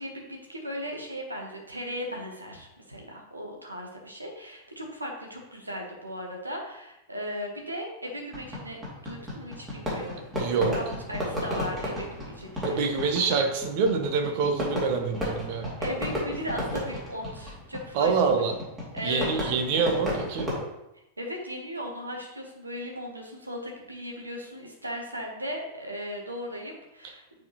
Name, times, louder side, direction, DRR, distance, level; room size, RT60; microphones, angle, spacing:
voice 1, 0.0-8.8 9.0-10.3 10.7-12.9 15.8-18.3 18.9-19.5 21.2-27.5, equal, 80° right, 1 dB, 1.3 m, -37 dB
Fireworks, 8.3-20.6, equal, 15° right, 2.5 m, -33 dB
voice 2, 10.4-10.8 12.6-15.7 17.9-18.5 19.0-20.5, right 5 dB, 45° right, 5 dB, 1.0 m, -26 dB
8.9 x 4.3 x 3.1 m, 0.88 s
figure-of-eight pair, 90°, 0 cm